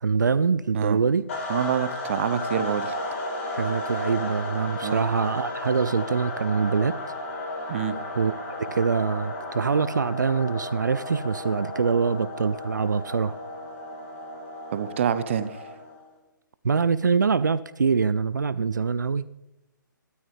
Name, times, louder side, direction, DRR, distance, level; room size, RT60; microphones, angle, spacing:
voice 1, 0.0-1.2 3.6-7.0 8.1-13.4 16.6-19.3, right 5 dB, 60° right, 0.5 m, -24 dB
sound 1, 1.3-16.0, left 1 dB, 40° left, 3.9 m, -34 dB
voice 2, 1.5-3.0 4.8-5.0 7.7-8.0 14.7-15.5, right 8 dB, 35° right, 0.9 m, -26 dB
27.0 x 13.0 x 3.3 m
figure-of-eight pair, 135°, 11 cm